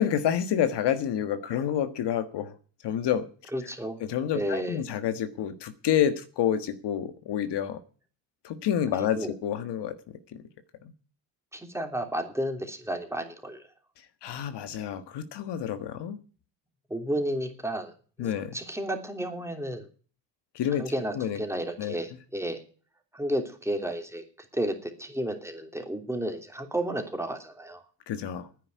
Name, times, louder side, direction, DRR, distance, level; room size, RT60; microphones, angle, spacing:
voice 1, 0.0-2.5 2.8-3.3 4.0-7.8 8.4-10.0 14.2-16.2 18.2-18.5 20.6-20.8 21.1-21.4 21.8-21.9 28.1-28.5, left 9 dB, 70° left, 10 dB, 1.6 m, -28 dB
voice 2, 3.5-4.0 4.3-4.8 8.9-9.3 11.5-13.6 16.9-17.9 18.2-19.9 20.8-22.6 23.1-24.2 24.5-27.8, right 1 dB, 5° right, 4 dB, 3.1 m, -32 dB
10.0 x 9.9 x 9.3 m, 0.41 s
cardioid pair, 95°, 43 cm